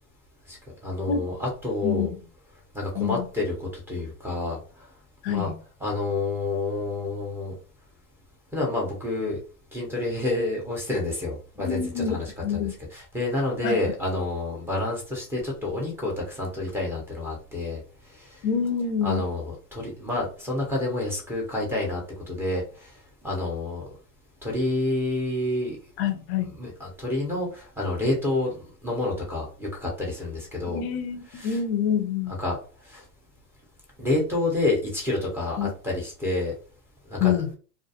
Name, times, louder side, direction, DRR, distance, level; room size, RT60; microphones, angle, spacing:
voice 1, 0.8-2.1 2.7-4.9 5.3-5.5 5.8-7.5 8.5-9.4 9.7-17.8 18.1-18.4 19.0-22.9 23.2-23.8 24.4-25.8 26.5-30.8 31.3-31.6 32.4-32.6 32.8-33.0 34.0-36.5 37.1-37.4, left 2 dB, 5° right, -2 dB, 0.5 m, -29 dB
voice 2, 3.0-3.3 5.2-5.5 11.6-12.7 13.6-13.8 18.4-19.2 26.0-26.5 30.7-32.3 35.6-35.7 37.2-37.5, left 8 dB, 40° left, 8 dB, 0.5 m, -26 dB
2.3 x 2.3 x 2.7 m, 0.39 s
hypercardioid pair, 120°, 49 cm